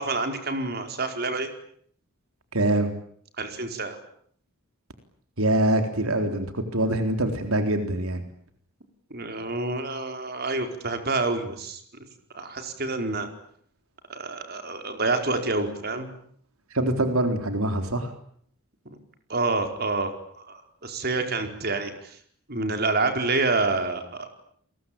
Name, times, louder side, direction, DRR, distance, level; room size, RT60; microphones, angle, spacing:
voice 1, 0.0-1.5 3.4-4.0 9.1-11.8 12.3-13.3 14.1-16.1 19.3-20.1 20.5-22.2 22.5-24.3, right 3 dB, 50° right, 6 dB, 4.8 m, -27 dB
voice 2, 2.5-2.9 5.4-8.2 16.7-18.1, right 1 dB, 85° right, 7 dB, 3.9 m, -24 dB
30.0 x 22.5 x 8.8 m, 0.64 s
head